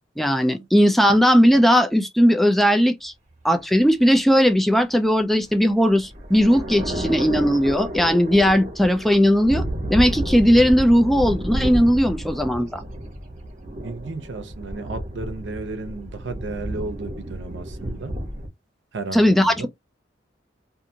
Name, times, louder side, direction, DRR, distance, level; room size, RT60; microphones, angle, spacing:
voice 1, 0.2-3.1 3.4-9.6 9.9-12.8 19.1-19.7, equal, ahead, 0.3 m, -18 dB
sound 1, 5.4-18.5, right 1 dB, 45° right, 1.0 m, -31 dB
voice 2, 13.8-18.1 18.9-19.7, right 3 dB, 90° right, 0.6 m, -33 dB
2.6 x 2.6 x 2.7 m
head